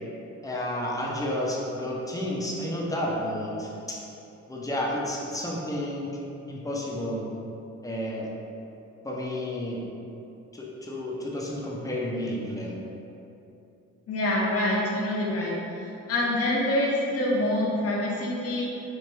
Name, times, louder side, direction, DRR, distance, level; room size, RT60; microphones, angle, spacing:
voice 1, 0.4-4.0 4.5-6.1 6.5-7.3 7.8-8.3 9.0-9.8 10.5-12.7, left 1 dB, 10° left, -4 dB, 0.7 m, -31 dB
voice 2, 14.1-15.6 16.1-18.6, left 1 dB, 50° left, -4 dB, 0.8 m, -26 dB
4.4 x 2.5 x 3.3 m, 2.9 s
cardioid pair, 90°, 30 cm